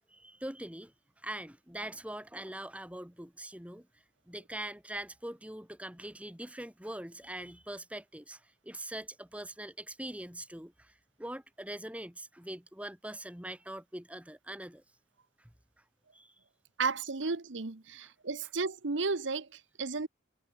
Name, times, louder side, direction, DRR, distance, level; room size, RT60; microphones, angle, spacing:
voice 1, 0.1-3.9 4.3-10.9 11.2-14.8 15.4-15.5 16.1-16.3, right 1 dB, 5° right, 2.1 m, -43 dB
voice 2, 16.8-20.1, right 4 dB, 80° right, 1.0 m, -33 dB
head